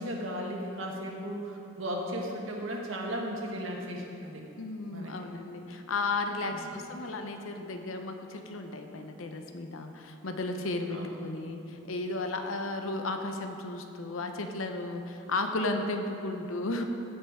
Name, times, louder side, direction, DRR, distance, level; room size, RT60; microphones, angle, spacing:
voice 1, 0.0-4.4 4.9-5.2 6.5-6.8 10.9-11.3, equal, 75° right, 0 dB, 1.5 m, -36 dB
voice 2, 4.6-16.8, left 2 dB, 85° left, 5 dB, 0.8 m, -34 dB
15.5 x 5.5 x 4.9 m, 3.0 s
head